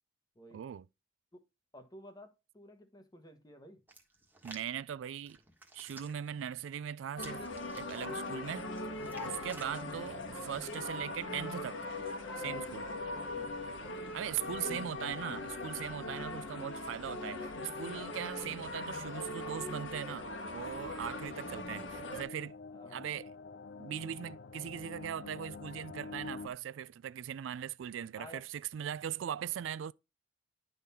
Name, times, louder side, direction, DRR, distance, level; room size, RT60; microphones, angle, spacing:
voice 1, 0.5-0.9 4.4-5.4 5.7-7.4 7.7-8.7 9.2-11.8 12.4-12.9 13.9-22.5 22.9-23.3 23.8-29.9, right 9 dB, 80° right, 0.3 m, -40 dB
voice 2, 1.7-3.8 9.7-10.1 13.1-13.5 14.3-14.8 22.7-23.1 28.2-28.5, equal, 20° left, 1.1 m, -53 dB
Hands, 3.9-4.7 5.3-6.3 7.2-8.0 8.6-9.7 10.4-10.7, right 2 dB, 10° right, 1.3 m, -53 dB
sound 1, 7.2-22.2, left 2 dB, 90° left, 1.5 m, -40 dB
sound 2, 20.1-26.5, left 4 dB, 60° left, 0.5 m, -48 dB
10.5 x 3.9 x 4.1 m
head